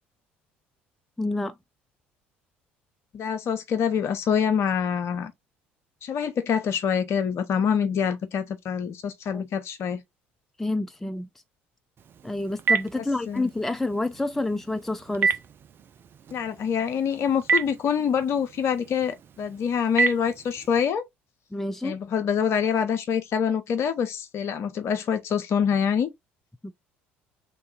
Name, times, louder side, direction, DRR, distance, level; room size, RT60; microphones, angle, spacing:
voice 1, 1.2-1.5 9.3-9.4 10.6-11.3 12.2-15.3 21.5-22.0 26.6-26.7, left 2 dB, 5° left, 0.3 m, -28 dB
voice 2, 3.1-5.3 6.0-10.0 12.9-13.4 16.3-21.0 21.8-26.1, left 7 dB, 45° left, 0.8 m, -25 dB
Telephone, 12.0-20.8, right 5 dB, 40° right, 0.6 m, -31 dB
3.3 x 2.6 x 4.3 m
figure-of-eight pair, 55°, 6 cm